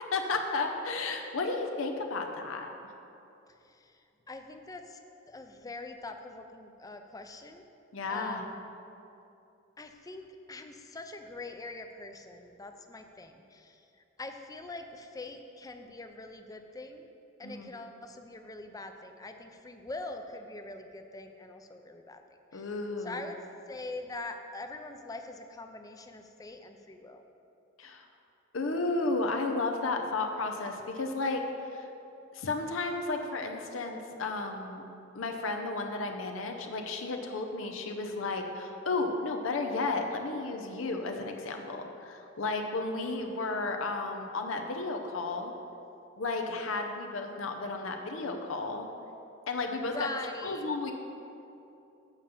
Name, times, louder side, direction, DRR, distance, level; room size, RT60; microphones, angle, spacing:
voice 1, 0.1-2.7 7.9-8.4 17.4-17.7 22.5-23.2 27.8-28.0 28.5-31.9 32.3-34.8 35.1-45.5 46.2-48.9 49.5-50.1 50.4-50.9, left 3 dB, 85° left, 4 dB, 0.7 m, -33 dB
voice 2, 3.6-5.0 5.3-7.7 8.1-8.7 9.8-17.1 17.4-22.2 22.5-22.7 23.0-23.4 23.7-27.2 43.0-43.2 49.9-50.7, left 2 dB, 20° left, 6 dB, 0.5 m, -43 dB
7.3 x 5.2 x 7.1 m, 2.8 s
head